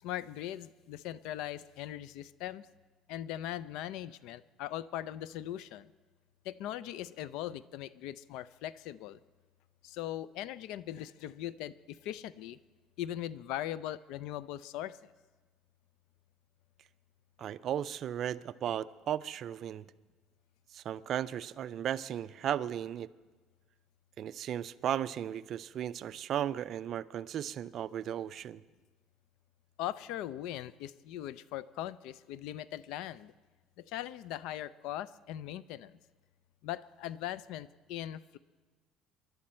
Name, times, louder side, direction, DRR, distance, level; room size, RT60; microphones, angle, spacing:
voice 1, 0.0-2.7 3.1-5.9 6.4-9.2 9.8-12.6 13.0-15.1 29.8-33.3 33.8-36.0 36.6-38.4, left 12 dB, 75° left, 18 dB, 0.4 m, -40 dB
voice 2, 17.4-19.8 20.7-23.1 24.2-28.6, right 10 dB, 45° right, 16 dB, 0.4 m, -35 dB
24.0 x 11.5 x 4.3 m, 1.3 s
cardioid pair, 135°, 0 cm